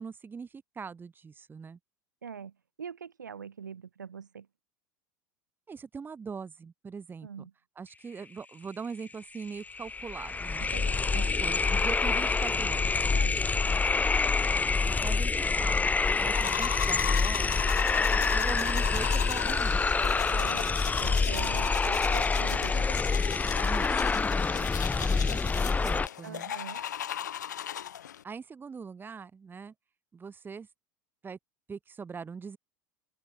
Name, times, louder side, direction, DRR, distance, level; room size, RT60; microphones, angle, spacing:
voice 1, 0.0-1.8 5.7-7.5 7.8-10.7 11.1-12.9 13.7-13.8 14.8-17.6 18.1-19.9 23.6-24.1 24.7-26.5 28.2-29.7 30.1-30.7 31.2-31.4 31.7-32.6, right 5 dB, 20° right, 2.3 m, -42 dB
voice 2, 2.2-2.5 2.8-4.5 7.2-7.5 10.6-11.4 13.1-13.4 20.3-20.7 21.0-22.9 26.2-26.8, right 7 dB, 80° right, 3.4 m, -43 dB
sound 1, 9.1-9.2 9.4-26.1, left 4 dB, 15° left, 1.8 m, -27 dB
sound 2, 16.3-28.2, left 10 dB, 75° left, 1.0 m, -37 dB
open air
figure-of-eight pair, 80°, 10 cm